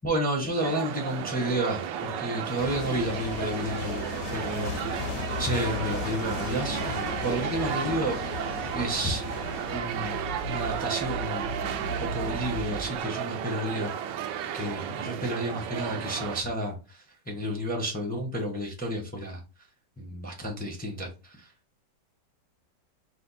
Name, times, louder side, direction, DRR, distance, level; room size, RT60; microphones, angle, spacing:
voice 1, 0.0-4.1 4.3-4.7 5.4-8.5 8.7-9.3 9.7-10.2 10.5-11.5 12.0-13.9 14.5-19.4 20.0-21.5, right 1 dB, 10° left, 1 dB, 0.5 m, -31 dB
sound 1, 0.6-16.4, right 9 dB, 85° right, 1.2 m, -33 dB
sound 2, 2.6-9.8, left 6 dB, 70° left, 1.0 m, -36 dB
sound 3, 9.6-13.1, right 1 dB, 65° right, 0.9 m, -37 dB
5.1 x 2.2 x 4.0 m, 0.31 s
omnidirectional pair, 1.9 m